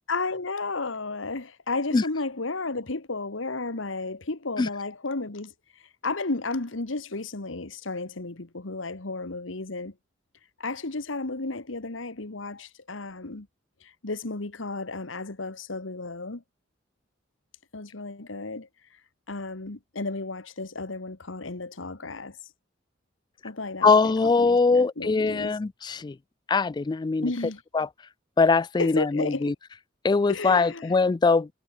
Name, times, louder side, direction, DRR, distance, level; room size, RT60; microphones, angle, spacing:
voice 1, 0.1-5.5 6.0-9.9 10.6-13.5 13.8-16.4 17.7-18.7 19.3-22.4 23.4-25.6 27.2-27.6 28.8-29.5 30.3-30.9, left 3 dB, 75° left, 1.6 m, -33 dB
voice 2, 23.8-26.2 26.5-27.3 27.7-27.9 28.4-29.5 30.0-31.5, left 4 dB, 20° left, 0.3 m, -22 dB
head